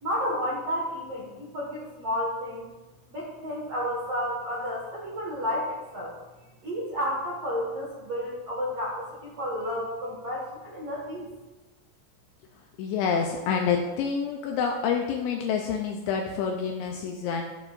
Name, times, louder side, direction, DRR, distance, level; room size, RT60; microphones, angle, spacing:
voice 1, 0.0-2.6 3.1-6.1 6.6-11.2, equal, 60° right, -5 dB, 1.6 m, -31 dB
voice 2, 12.8-17.4, left 6 dB, 80° left, 2 dB, 2.6 m, -27 dB
14.5 x 8.4 x 2.6 m, 1.2 s
omnidirectional pair, 5.8 m